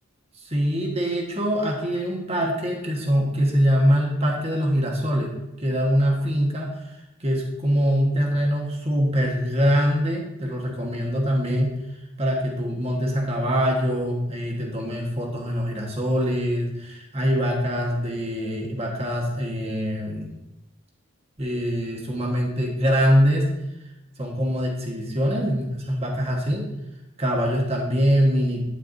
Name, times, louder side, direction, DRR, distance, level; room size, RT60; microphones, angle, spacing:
voice 1, 0.4-5.3 5.6-11.7 12.2-20.3 21.4-23.5 24.2-26.7 27.2-28.7, equal, 30° right, 0 dB, 1.3 m, -23 dB
9.6 x 6.6 x 2.6 m, 0.92 s
head